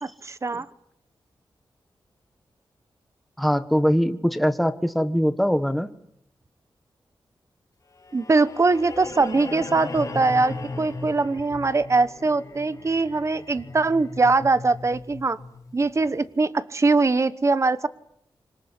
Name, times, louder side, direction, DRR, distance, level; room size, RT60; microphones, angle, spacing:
voice 1, 0.0-0.6 8.1-15.4 15.7-17.9, right 3 dB, 35° right, 14 dB, 1.1 m, -22 dB
voice 2, 3.4-5.9, equal, ahead, 10 dB, 1.4 m, -22 dB
sound 1, 8.0-16.1, left 3 dB, 35° left, 6.1 m, -37 dB
26.0 x 25.5 x 8.3 m, 0.74 s
wide cardioid pair, 135°, 9 cm